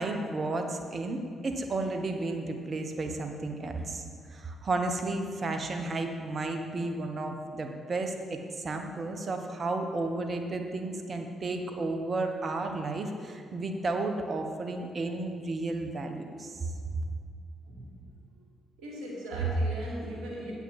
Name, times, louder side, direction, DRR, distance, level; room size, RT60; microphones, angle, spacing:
voice 1, 0.0-4.0 4.3-16.7, right 2 dB, 45° right, 5 dB, 1.2 m, -33 dB
voice 2, 17.6-18.1 18.8-20.5, right 2 dB, 70° right, -5 dB, 2.7 m, -33 dB
8.6 x 6.0 x 7.4 m, 2.2 s
hypercardioid pair, 45°, 0 cm